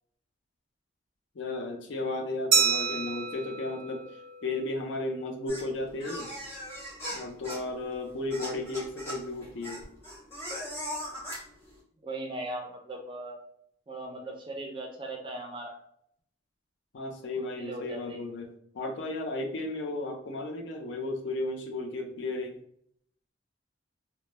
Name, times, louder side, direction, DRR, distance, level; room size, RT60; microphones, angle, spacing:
voice 1, 1.3-6.3 7.1-9.9 16.9-22.6, left 2 dB, 70° left, 4 dB, 0.4 m, -34 dB
Glass, 2.5-5.0, right 6 dB, 90° right, 0.7 m, -29 dB
sound 1, 5.5-11.7, equal, 10° left, 0.7 m, -40 dB
voice 2, 12.0-13.4 13.9-15.8 17.3-18.3, right 2 dB, 25° right, 2 dB, 0.4 m, -39 dB
2.1 x 2.0 x 3.1 m, 0.67 s
head